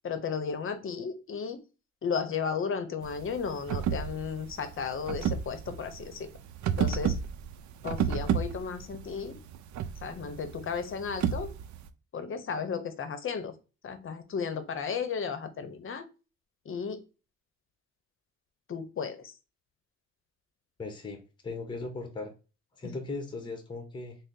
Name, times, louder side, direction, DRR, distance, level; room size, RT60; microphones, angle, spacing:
voice 1, 0.0-1.6 2.0-6.3 6.8-7.2 7.8-9.4 10.0-11.5 12.1-13.5 13.8-16.0 16.7-17.0 18.7-19.3 22.8-23.0, left 6 dB, 45° left, 10 dB, 0.7 m, -34 dB
sound 1, 3.0-11.9, right 8 dB, 70° right, 0.5 m, -32 dB
voice 2, 20.8-22.3 22.8-24.2, left 3 dB, 15° left, 6 dB, 0.8 m, -38 dB
3.8 x 2.0 x 3.6 m, 0.31 s
cardioid pair, 90°, 30 cm